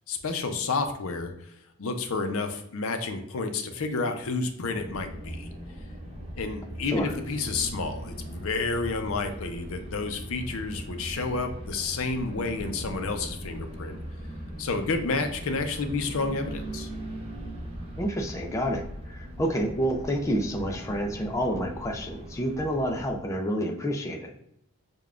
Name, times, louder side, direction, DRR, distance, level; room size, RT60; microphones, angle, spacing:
voice 1, 0.1-1.3 1.8-5.5 6.4-14.0 14.6-16.9, left 3 dB, 70° left, 6 dB, 0.5 m, -30 dB
sound 1, 4.6-23.3, right 1 dB, 25° right, 0.8 m, -39 dB
voice 2, 6.8-7.1 18.0-24.3, equal, 15° left, 1 dB, 0.3 m, -29 dB
6.6 x 2.3 x 2.4 m, 0.77 s
head